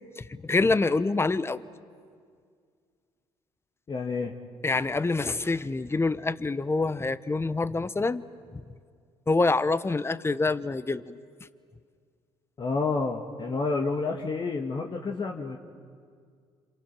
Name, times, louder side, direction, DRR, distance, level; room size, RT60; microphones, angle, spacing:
voice 1, 0.2-1.7 4.6-8.2 9.3-11.2, left 3 dB, 20° left, 15 dB, 0.9 m, -26 dB
voice 2, 3.9-4.3 12.6-15.6, left 4 dB, 40° left, 1 dB, 1.8 m, -29 dB
27.5 x 26.5 x 6.1 m, 2.1 s
supercardioid pair, 60°, 12 cm